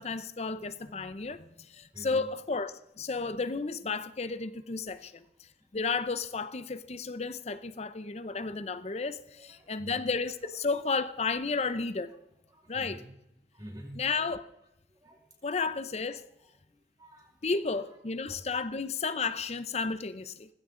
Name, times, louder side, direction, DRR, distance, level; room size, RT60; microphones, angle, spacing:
voice 1, 0.0-1.5 1.7-5.2 5.7-12.1 12.7-13.0 14.0-14.5 15.4-16.3 17.4-20.5, left 4 dB, 35° left, 0.6 m, -32 dB
voice 2, 1.9-2.3 5.0-5.1 9.4-10.7 12.5-13.1 13.5-14.0 15.0-15.7 16.0-16.5 17.0-18.0 19.8-20.0, equal, 25° right, 5.3 m, -50 dB
19.0 x 16.0 x 3.8 m
head